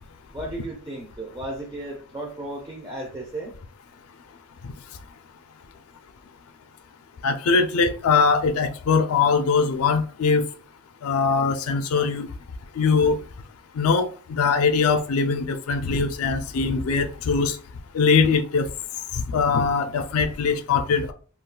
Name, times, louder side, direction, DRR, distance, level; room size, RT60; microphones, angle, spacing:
voice 1, 0.3-3.5, right 1 dB, 15° right, 0.4 m, -34 dB
voice 2, 7.2-10.4 11.0-12.3 12.8-13.2 13.7-17.6 17.9-18.7 19.1-21.1, left 5 dB, 75° left, 0.4 m, -21 dB
2.4 x 2.3 x 3.7 m
head